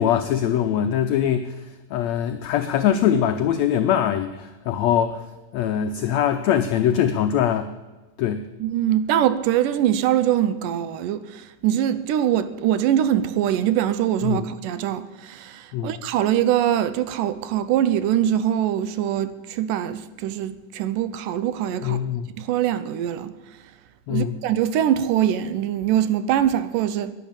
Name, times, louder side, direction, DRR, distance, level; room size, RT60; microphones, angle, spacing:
voice 1, 0.0-5.2 5.5-7.7 8.2-8.4 14.2-14.5 15.7-16.0 21.8-22.3 24.1-24.3, left 9 dB, 85° left, 1.5 m, -22 dB
voice 2, 8.6-22.0 22.4-23.3 24.1-27.1, right 11 dB, 85° right, 2.2 m, -23 dB
11.0 x 10.0 x 8.8 m
omnidirectional pair, 3.9 m